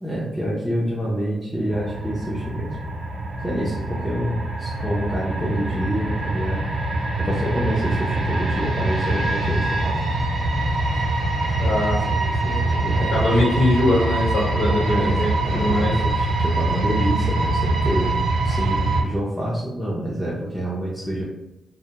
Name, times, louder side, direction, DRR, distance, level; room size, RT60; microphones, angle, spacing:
voice 1, 0.0-2.8 3.4-6.7 7.2-10.0 12.4-13.3 14.7-18.2 18.4-21.2, right 1 dB, ahead, -7 dB, 0.6 m, -27 dB
sound 1, 1.7-19.0, right 2 dB, 65° right, 0.6 m, -24 dB
voice 2, 11.6-16.0, left 1 dB, 75° left, -5 dB, 1.2 m, -23 dB
2.1 x 2.1 x 2.8 m, 0.91 s
cardioid pair, 70°, 0 cm